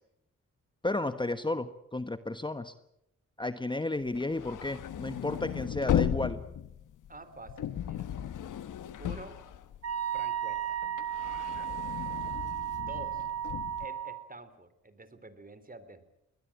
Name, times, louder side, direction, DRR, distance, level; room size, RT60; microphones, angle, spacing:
voice 1, 0.8-2.7 3.4-6.4, left 2 dB, 15° left, 11 dB, 1.2 m, -33 dB
sound 1, 4.1-10.2 10.5-13.9, left 10 dB, 75° left, 1.4 m, -35 dB
voice 2, 7.1-8.1 9.0-9.4 10.1-10.8 12.8-13.3 13.8-16.0, right 2 dB, 25° right, 13 dB, 3.5 m, -48 dB
Wind instrument woodwind instrument, 9.8-14.2, right 10 dB, 55° right, 3.5 m, -34 dB
22.0 x 19.0 x 8.7 m, 0.83 s
supercardioid pair, 55°, 31 cm